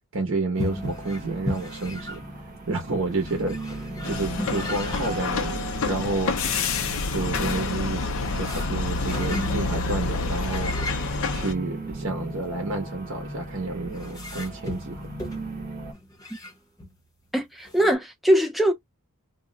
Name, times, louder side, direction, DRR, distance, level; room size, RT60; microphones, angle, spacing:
voice 1, 0.1-2.2 2.7-5.6 5.8-6.7 7.1-10.7 11.3-15.1, right 2 dB, 65° right, 0.9 m, -30 dB
sound 1, 0.5-17.0 17.3-17.4 17.6-18.0, equal, 15° left, 0.8 m, -37 dB
sound 2, 0.5-15.9, right 2 dB, 35° right, 1.0 m, -38 dB
sound 3, 4.0-11.5, left 4 dB, 65° left, 0.6 m, -28 dB
voice 2, 17.3-18.7, equal, ahead, 0.4 m, -21 dB
2.4 x 2.1 x 3.7 m
head